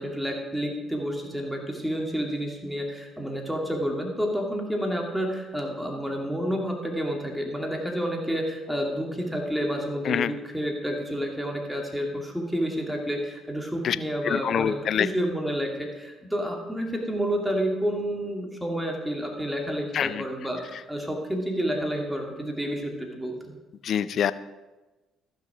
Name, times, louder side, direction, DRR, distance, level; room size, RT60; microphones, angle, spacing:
voice 1, 0.0-23.5, equal, 5° right, 1 dB, 2.5 m, -29 dB
voice 2, 14.2-15.1 19.9-20.2 23.8-24.3, left 9 dB, 60° left, 16 dB, 0.4 m, -25 dB
14.0 x 6.3 x 5.0 m, 1.1 s
hypercardioid pair, 55°, 0 cm